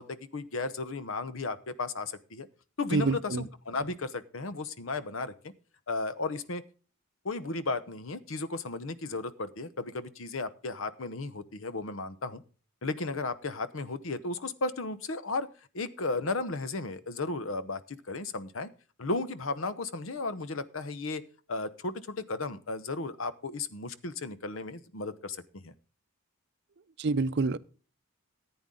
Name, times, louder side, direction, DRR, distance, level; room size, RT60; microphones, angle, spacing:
voice 1, 0.0-2.5 2.8-5.5 5.9-6.6 7.2-12.4 12.8-15.5 15.7-18.7 19.0-21.2 21.5-25.4 25.6-25.7, left 3 dB, 70° left, 0.9 m, -34 dB
voice 2, 2.9-3.4 27.0-27.6, right 3 dB, 55° right, 0.5 m, -27 dB
14.5 x 8.9 x 3.8 m
head